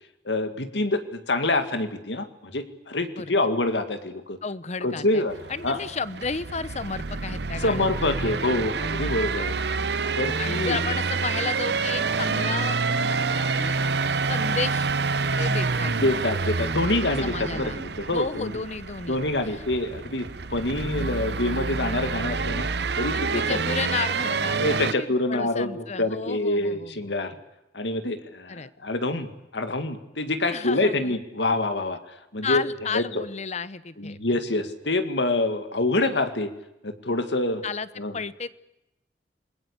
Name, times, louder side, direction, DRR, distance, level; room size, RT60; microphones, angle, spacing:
voice 1, 0.3-4.4 4.8-5.3 5.6-5.8 7.6-9.9 10.2-10.8 16.0-18.5 19.1-22.7 23.0-23.6 24.6-27.4 27.7-32.6 32.9-33.2 34.0-36.5 36.8-37.6 38.0-38.1, left 2 dB, 80° left, 8 dB, 2.1 m, -26 dB
voice 2, 4.4-5.2 5.5-8.3 9.4-9.5 10.4-13.7 14.3-14.9 15.4-15.9 17.2-17.8 18.1-19.2 19.5-19.6 23.1-27.0 28.5-28.7 30.5-31.2 32.4-34.5 37.6-37.9 38.1-38.5, left 4 dB, 40° left, 16 dB, 0.9 m, -33 dB
sound 1, 5.3-24.9, right 4 dB, 65° right, 0.9 m, -28 dB
28.0 x 20.5 x 8.2 m, 0.91 s
head